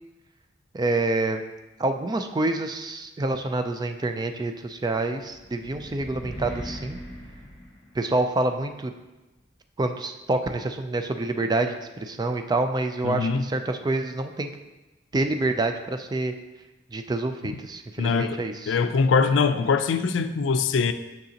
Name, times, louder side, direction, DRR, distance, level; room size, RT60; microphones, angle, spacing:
voice 1, 0.7-1.4 1.8-7.0 7.9-8.9 9.8-14.5 15.1-16.3 16.9-18.8, right 2 dB, 20° right, 7 dB, 0.4 m, -27 dB
sound 1, 5.3-8.4, equal, 25° left, 1.3 m, -40 dB
voice 2, 13.0-13.4 18.0-20.9, left 5 dB, 80° left, 10 dB, 0.4 m, -23 dB
6.5 x 5.9 x 2.8 m, 1.1 s
head